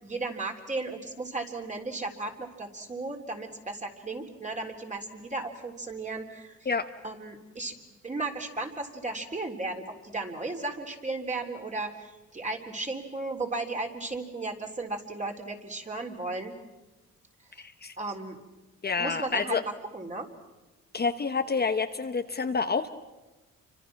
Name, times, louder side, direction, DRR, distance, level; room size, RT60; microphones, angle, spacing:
voice 1, 0.0-6.6 7.0-7.7 8.0-16.6 17.6-17.7 18.0-18.4 19.0-20.3, right 2 dB, 25° right, 3 dB, 3.8 m, -35 dB
voice 2, 17.6-17.9 18.8-19.6 20.9-22.9, left 4 dB, 35° left, 7 dB, 1.1 m, -28 dB
29.0 x 25.0 x 6.0 m, 1.1 s
cardioid pair, 90°, 30 cm